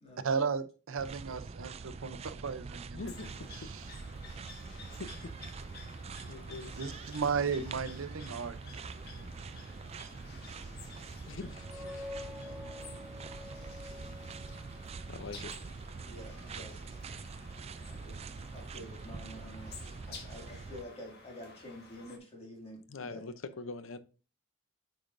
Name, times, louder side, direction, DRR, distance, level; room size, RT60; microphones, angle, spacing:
voice 1, 0.2-3.0 3.6-3.8 6.8-8.6, right 5 dB, 85° right, 0.6 m, -34 dB
sound 1, 1.0-20.8, right 4 dB, 30° right, 0.3 m, -45 dB
voice 2, 2.9-3.7 4.7-5.3 6.2-6.8 9.1-9.3 10.3-10.5 11.3-12.4 14.5-14.7 15.1-15.6 22.9-24.0, left 3 dB, 75° left, 0.7 m, -45 dB
sound 2, 3.0-22.2, left 4 dB, 55° left, 1.4 m, -53 dB
sound 3, 11.4-15.0, left 2 dB, 5° right, 1.2 m, -47 dB
voice 3, 16.0-16.8 17.8-18.2 18.5-19.8 20.0-23.2, left 1 dB, 30° left, 2.3 m, -48 dB
8.9 x 5.1 x 2.6 m
head